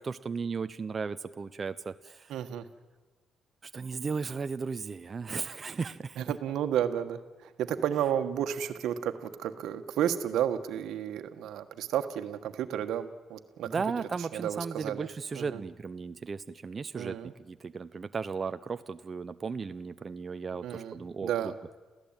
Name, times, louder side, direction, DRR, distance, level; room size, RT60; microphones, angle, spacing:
voice 1, 0.0-2.3 3.6-6.2 13.7-21.3, right 5 dB, 35° right, 11 dB, 0.7 m, -36 dB
voice 2, 2.3-2.6 6.2-13.7 14.2-15.1 15.3-15.6 16.9-17.3 20.6-21.5, right 10 dB, 80° right, 9 dB, 1.4 m, -32 dB
28.5 x 15.5 x 8.9 m, 1.3 s
cardioid pair, 90°, 0 cm